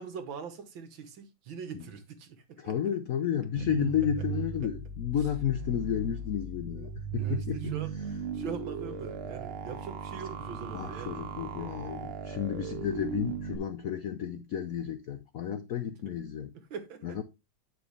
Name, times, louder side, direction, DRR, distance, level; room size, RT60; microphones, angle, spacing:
voice 1, 0.0-2.8 6.7-8.0 8.3-11.2 16.1-16.2 16.5-17.2, right 6 dB, 65° right, 1.9 m, -42 dB
voice 2, 2.6-7.8 10.7-16.5 17.0-17.2, left 9 dB, 75° left, 0.8 m, -32 dB
sound 1, 3.6-13.6, right 5 dB, 80° right, 1.9 m, -37 dB
9.6 x 6.0 x 3.2 m
omnidirectional pair, 2.4 m